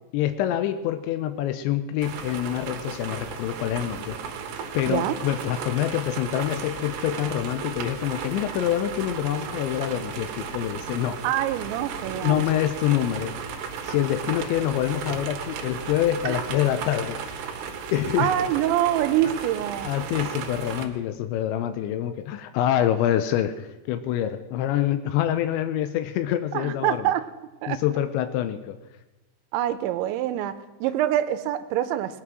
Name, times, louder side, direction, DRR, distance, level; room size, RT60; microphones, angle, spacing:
voice 1, 0.1-4.4 4.7-11.2 12.2-13.3 13.8-17.2 17.9-18.4 19.8-27.1 27.7-28.8, left 11 dB, 85° left, 10 dB, 3.0 m, -26 dB
sound 1, 2.0-20.9, right 6 dB, 75° right, 3.3 m, -35 dB
voice 2, 4.9-5.2 11.2-12.4 16.3-16.4 18.2-19.9 26.5-27.3 27.6-27.8 29.5-32.2, right 12 dB, 90° right, 11 dB, 3.1 m, -25 dB
19.5 x 9.5 x 6.1 m, 1.1 s
omnidirectional pair, 5.2 m